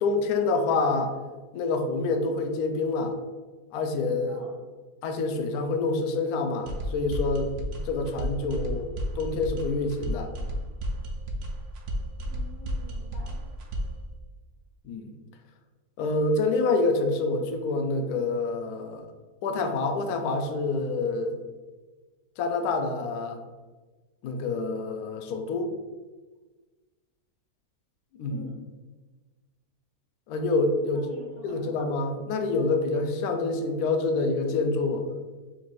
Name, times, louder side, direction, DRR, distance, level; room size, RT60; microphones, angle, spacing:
voice 1, 0.0-1.1 1.5-3.1 3.7-4.4 5.0-7.5 7.8-8.9 9.2-10.3 14.8-15.1 16.0-19.0 19.4-21.4 22.4-23.4 24.2-25.7 28.2-28.4 30.3-31.1 31.4-35.0, left 3 dB, 75° left, 5 dB, 1.1 m, -27 dB
sound 1, 6.7-14.0, equal, 75° right, 1.1 m, -32 dB
voice 2, 12.3-13.4 28.3-28.5 30.9-31.8, left 1 dB, 50° right, -5 dB, 0.6 m, -46 dB
4.1 x 2.5 x 4.6 m, 1.3 s
omnidirectional pair, 1.7 m